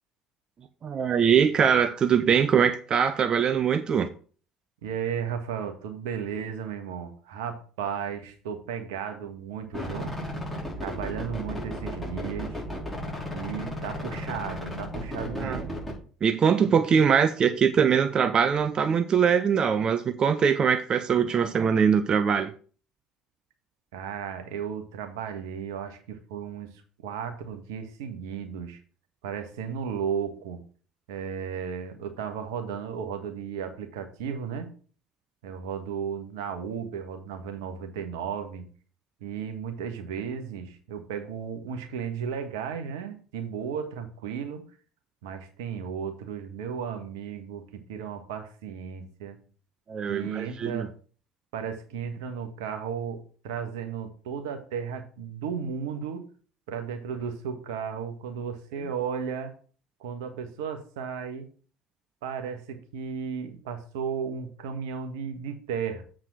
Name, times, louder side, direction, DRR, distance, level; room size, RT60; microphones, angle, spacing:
voice 1, 0.8-4.1 15.3-15.7 16.2-22.5 49.9-50.9, right 7 dB, 40° right, 11 dB, 0.7 m, -22 dB
voice 2, 4.8-10.2 10.8-12.6 13.3-15.8 23.9-28.8 29.2-30.6 31.1-34.7 35.4-38.7 39.2-44.7 45.2-49.4 50.1-50.9 51.5-56.3 56.7-59.5 60.0-61.5 62.2-66.0, right 7 dB, 75° right, 7 dB, 1.4 m, -34 dB
sound 1, 9.7-15.9, left 1 dB, 5° left, 4.6 m, -34 dB
7.7 x 4.8 x 6.0 m, 0.41 s
hypercardioid pair, 65°, 2 cm